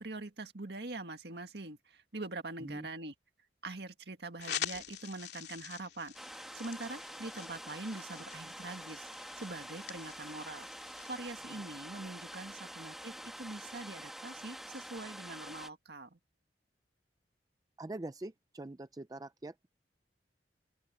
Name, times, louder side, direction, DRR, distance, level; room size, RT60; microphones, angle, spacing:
voice 1, 0.0-3.1 3.6-9.1 9.4-10.7 11.0-16.2, right 2 dB, 65° right, 1.9 m, -44 dB
sound 1, 4.4-11.2, left 9 dB, 65° left, 3.1 m, -45 dB
sound 2, 6.1-15.7, equal, ahead, 1.8 m, -47 dB
voice 2, 17.8-19.7, right 2 dB, 20° right, 0.5 m, -44 dB
open air
head